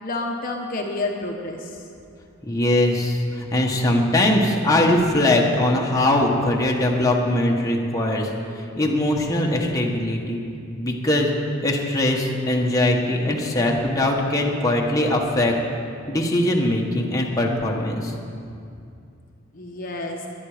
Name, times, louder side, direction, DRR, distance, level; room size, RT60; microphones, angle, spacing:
voice 1, 0.0-1.7 19.5-20.2, left 2 dB, 45° left, 1 dB, 1.2 m, -29 dB
voice 2, 2.4-10.4 10.8-11.3 11.6-15.5 16.1-18.1, left 1 dB, 15° left, -1 dB, 1.4 m, -21 dB
22.0 x 9.9 x 5.1 m, 2.5 s
head